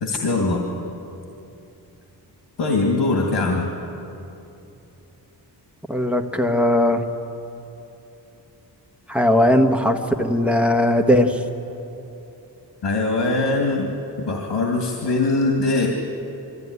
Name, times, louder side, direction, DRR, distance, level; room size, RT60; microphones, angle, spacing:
voice 1, 0.0-0.7 2.6-3.7 12.8-13.9 14.2-15.9, left 3 dB, 85° left, 1 dB, 2.3 m, -21 dB
voice 2, 5.9-7.0 9.1-11.4, left 1 dB, 5° right, 3 dB, 1.3 m, -18 dB
23.0 x 14.5 x 9.7 m, 2.9 s
wide cardioid pair, 140°, 41 cm